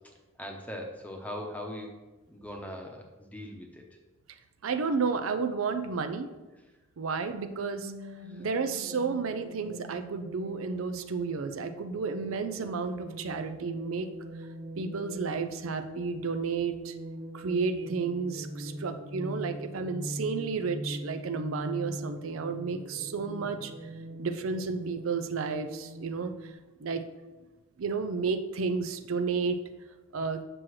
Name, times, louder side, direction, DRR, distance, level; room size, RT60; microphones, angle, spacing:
voice 1, 0.4-1.9 2.3-3.8 8.3-8.5, left 1 dB, 5° left, 2 dB, 0.8 m, -40 dB
voice 2, 4.6-6.3 7.0-7.9 8.4-14.1 14.8-16.9 17.3-23.7 24.2-26.5 26.8-27.0 27.8-29.6 30.1-30.4, right 5 dB, 85° right, 8 dB, 0.5 m, -32 dB
sound 1, 7.3-26.5, equal, 65° right, 0.8 m, -42 dB
7.6 x 6.1 x 3.1 m, 1.1 s
head